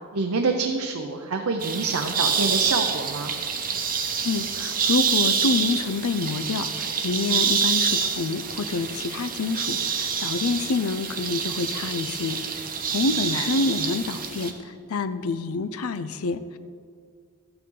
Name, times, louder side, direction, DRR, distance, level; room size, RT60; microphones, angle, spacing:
voice 1, 0.1-3.3 13.3-13.4, right 4 dB, 80° right, 4 dB, 0.7 m, -26 dB
sound 1, 1.6-14.5, right 6 dB, 40° right, 0.9 m, -27 dB
voice 2, 4.2-12.4 12.9-16.6, left 3 dB, 75° left, 12 dB, 0.5 m, -27 dB
13.0 x 8.8 x 3.9 m, 2.1 s
head